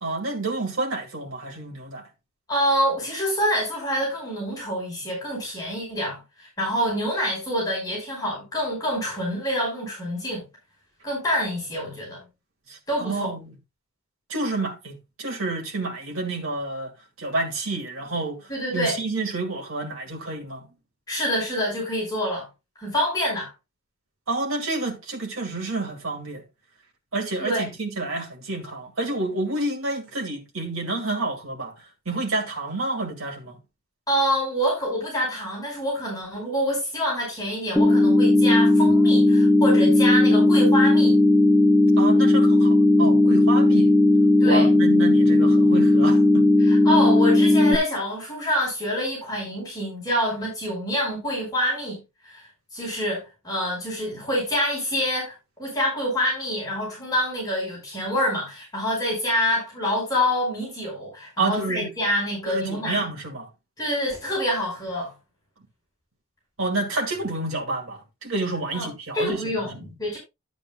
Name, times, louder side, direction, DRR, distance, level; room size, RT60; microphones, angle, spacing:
voice 1, 0.0-2.1 12.7-13.6 14.3-20.7 24.3-26.4 27.1-31.7 32.1-33.6 42.0-43.9 44.4-46.4 61.4-61.9 62.5-63.5 66.6-69.8, right 2 dB, 75° right, 2.4 m, -29 dB
voice 2, 2.5-10.5 11.0-12.2 12.9-13.3 18.5-19.0 21.1-22.5 22.8-23.5 27.4-27.7 34.1-41.2 44.4-44.7 46.6-63.0 63.8-65.1 68.7-68.9 69.1-70.2, equal, 20° left, 5.4 m, -26 dB
sound 1, 37.8-47.8, left 1 dB, 5° right, 0.9 m, -17 dB
12.5 x 8.9 x 2.3 m
head